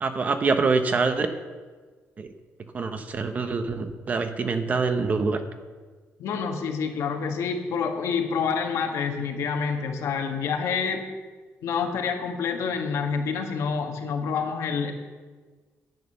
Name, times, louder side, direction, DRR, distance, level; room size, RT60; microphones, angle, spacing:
voice 1, 0.0-1.4 2.2-2.3 2.7-5.4, right 4 dB, 30° right, 8 dB, 0.7 m, -25 dB
voice 2, 6.2-11.1 11.6-14.9, left 6 dB, 75° left, 3 dB, 1.5 m, -27 dB
10.5 x 9.1 x 6.7 m, 1.4 s
cardioid pair, 175°, 5 cm